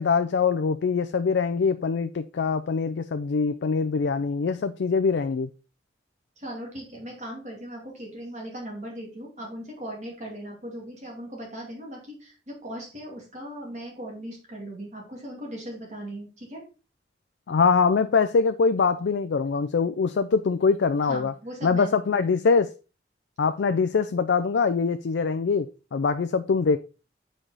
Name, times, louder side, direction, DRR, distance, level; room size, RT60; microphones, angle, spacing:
voice 1, 0.0-5.5 17.5-21.3 21.6-22.7 23.4-26.8, left 5 dB, 75° left, 0.4 m, -23 dB
voice 2, 6.4-16.6 21.1-22.3, equal, 40° right, 2.4 m, -38 dB
7.5 x 5.0 x 4.0 m
head